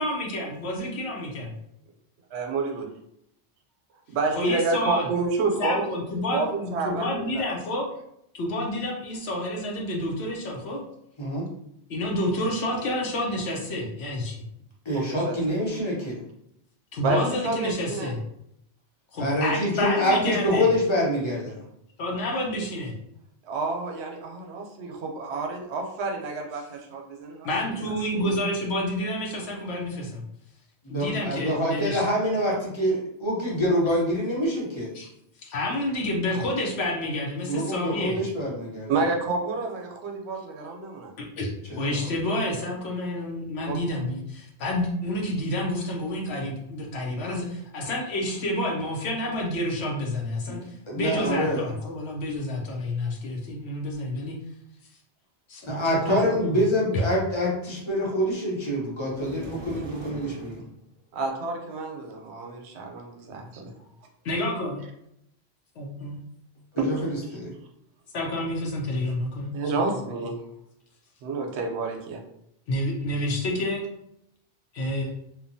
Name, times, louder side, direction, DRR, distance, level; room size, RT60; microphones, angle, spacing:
voice 1, 0.0-1.5 4.3-5.1 5.6-7.9 8.3-10.8 11.9-14.4 16.9-18.2 19.1-20.7 22.0-22.9 27.4-30.2 30.9-32.0 34.9-35.1 35.4-38.2 41.2-41.5 41.7-54.4 55.5-55.8 56.1-56.6 64.2-64.8 65.8-66.2 68.1-69.8 72.7-73.8 74.7-75.1, left 1 dB, 85° left, -1 dB, 0.9 m, -29 dB
voice 2, 2.3-2.8 4.1-5.9 6.3-7.5 14.9-15.5 17.0-18.1 23.4-27.5 28.1-28.3 38.9-41.1 43.7-43.8 56.1-56.2 61.1-63.7 66.8-66.9 69.5-70.4 71.2-72.2, right 3 dB, 85° right, 2 dB, 0.9 m, -29 dB
voice 3, 14.8-16.2 19.2-21.6 30.8-34.9 37.5-38.9 41.7-42.0 50.5-50.6 50.9-51.6 55.6-60.6 66.7-67.5, equal, 30° left, -4 dB, 0.8 m, -26 dB
sound 1, 59.1-60.7, right 1 dB, 50° right, 0.8 m, -39 dB
2.9 x 2.2 x 2.6 m, 0.76 s
omnidirectional pair, 1.1 m